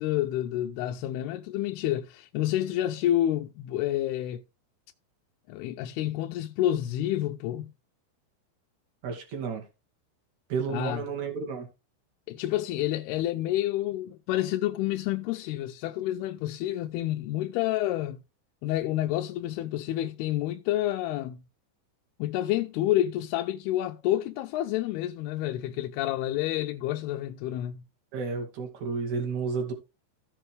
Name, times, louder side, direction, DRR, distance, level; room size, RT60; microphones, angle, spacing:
voice 1, 0.0-4.4 5.5-7.7 10.7-11.0 12.3-18.2 18.6-21.4 22.2-27.8, left 13 dB, 80° left, 2.5 m, -29 dB
voice 2, 9.0-9.6 10.5-11.7 28.1-29.7, right 5 dB, 50° right, 3.3 m, -31 dB
16.0 x 5.7 x 3.4 m
omnidirectional pair, 4.8 m